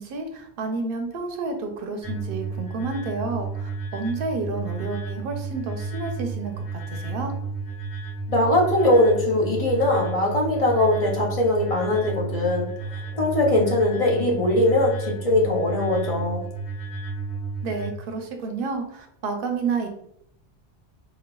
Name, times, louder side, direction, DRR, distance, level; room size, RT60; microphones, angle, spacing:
voice 1, 0.0-7.3 17.6-19.9, right 4 dB, 65° right, 4 dB, 0.7 m, -30 dB
sound 1, 2.0-17.9, right 4 dB, 65° left, 1.9 m, -32 dB
voice 2, 8.3-12.7 13.1-16.4, left 1 dB, 40° left, -2 dB, 0.6 m, -21 dB
4.0 x 2.3 x 2.2 m, 0.71 s
omnidirectional pair, 1.1 m